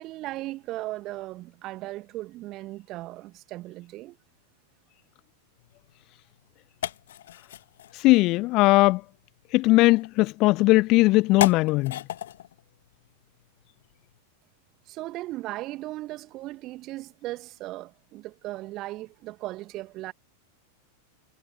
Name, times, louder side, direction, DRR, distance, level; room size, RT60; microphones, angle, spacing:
voice 1, 0.0-4.2 14.9-20.1, right 17 dB, 35° right, 2.4 m, -37 dB
sound 1, 5.6-14.2, left 12 dB, 60° left, 2.6 m, -37 dB
voice 2, 8.0-9.0 9.5-12.0, left 21 dB, 40° left, 0.4 m, -19 dB
figure-of-eight pair, 90°, 0 cm